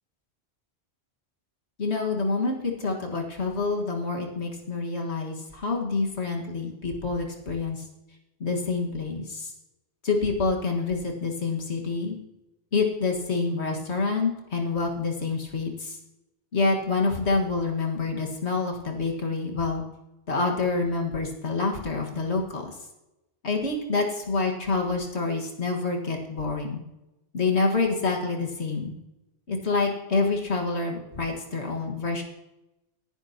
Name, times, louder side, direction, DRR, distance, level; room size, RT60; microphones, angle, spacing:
voice 1, 1.8-7.9 8.4-9.5 10.0-12.2 12.7-16.0 16.5-19.8 20.3-22.7 23.4-26.8 27.3-28.9 29.5-32.2, left 3 dB, 85° left, 1 dB, 2.1 m, -27 dB
18.5 x 10.5 x 2.9 m, 0.95 s
omnidirectional pair, 1.1 m